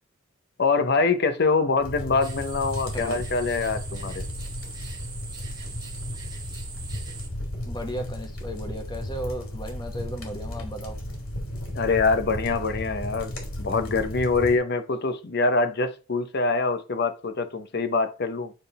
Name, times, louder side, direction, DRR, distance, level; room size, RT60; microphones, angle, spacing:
voice 1, 0.6-4.2 11.7-18.5, left 4 dB, 50° left, 0.8 m, -24 dB
sound 1, 1.8-14.6, left 1 dB, 80° left, 2.8 m, -34 dB
sound 2, 2.2-7.3, right 5 dB, 20° right, 1.3 m, -42 dB
voice 2, 7.6-11.0, equal, 20° left, 1.3 m, -35 dB
9.0 x 3.7 x 4.2 m
head